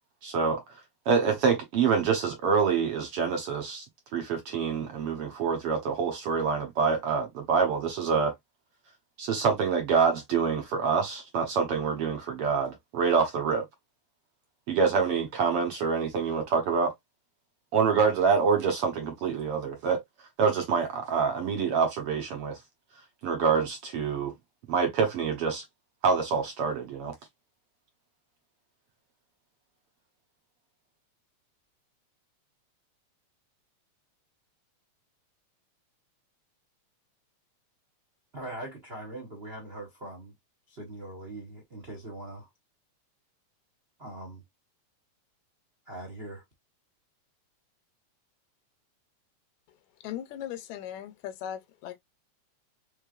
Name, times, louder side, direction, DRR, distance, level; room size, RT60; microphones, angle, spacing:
voice 1, 0.2-3.9 4.1-8.3 9.2-13.6 14.7-16.9 17.7-20.0 20.4-22.6 23.2-24.3 24.7-25.6 26.0-27.1, right 5 dB, 65° right, 1.6 m, -26 dB
voice 2, 38.3-40.3 40.7-42.5 44.0-44.4 45.9-46.4, right 1 dB, 50° right, 0.7 m, -41 dB
voice 3, 50.0-52.0, left 10 dB, 80° left, 2.0 m, -38 dB
4.5 x 3.4 x 2.4 m
omnidirectional pair, 3.3 m